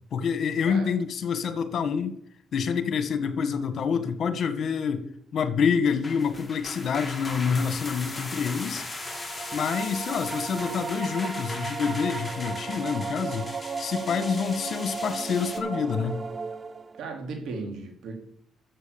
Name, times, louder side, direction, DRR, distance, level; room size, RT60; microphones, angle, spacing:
voice 1, 0.1-2.1 2.5-5.1 5.3-8.8 9.5-13.5 13.8-16.2, left 6 dB, 60° left, 11 dB, 1.7 m, -27 dB
voice 2, 0.6-0.9 17.0-18.2, right 3 dB, 80° right, 3 dB, 4.2 m, -36 dB
sound 1, 5.9-15.6, left 2 dB, 15° left, 3.0 m, -39 dB
sound 2, 8.9-17.1, right 5 dB, 35° right, 0.6 m, -35 dB
13.5 x 7.6 x 7.2 m, 0.67 s
cardioid pair, 90°, 0 cm